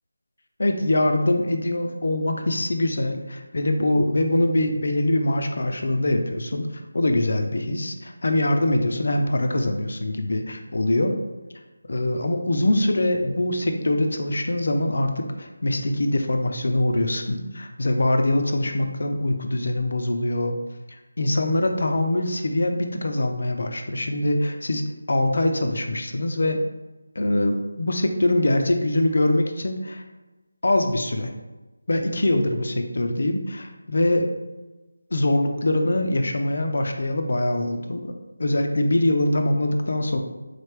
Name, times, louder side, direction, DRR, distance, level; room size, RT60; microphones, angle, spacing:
voice 1, 0.6-6.7 6.9-11.2 11.9-20.6 20.9-26.6 27.2-30.0 30.6-31.3 31.9-34.3 35.1-38.1 38.4-40.2, left 1 dB, 60° left, 5 dB, 0.5 m, -23 dB
4.0 x 3.2 x 3.3 m, 1.1 s
figure-of-eight pair, 165°, 0 cm